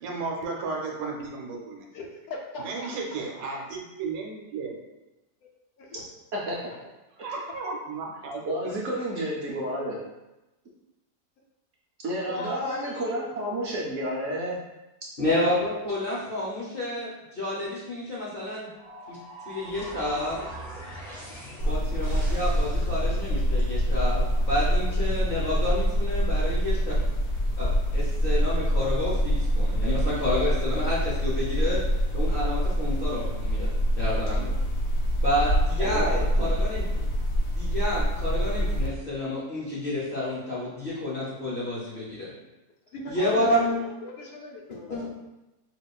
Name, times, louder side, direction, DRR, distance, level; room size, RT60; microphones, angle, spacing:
voice 1, 0.0-1.9 2.6-4.8 7.2-8.4, right 4 dB, 85° right, 0 dB, 1.2 m, -34 dB
voice 2, 1.9-2.9 5.4-5.5 5.8-6.0 12.3-13.4 42.9-45.1, left 2 dB, 70° left, 0 dB, 1.0 m, -39 dB
voice 3, 8.4-10.0 12.0-14.6 35.8-36.5, equal, 60° right, -4 dB, 0.8 m, -30 dB
voice 4, 15.2-18.7 19.1-19.2 19.5-20.4 21.7-27.0 27.6-31.8 32.1-33.7 34.0-34.5 35.2-36.8 37.5-42.3 43.1-43.8 44.9-45.1, left 1 dB, 50° left, -7 dB, 0.7 m, -29 dB
sound 1, 18.8-23.3, right 1 dB, 5° left, 0.4 m, -41 dB
sound 2, 21.6-38.9, equal, 90° left, 1.4 m, -25 dB
4.9 x 2.3 x 2.3 m, 1.0 s
omnidirectional pair, 1.7 m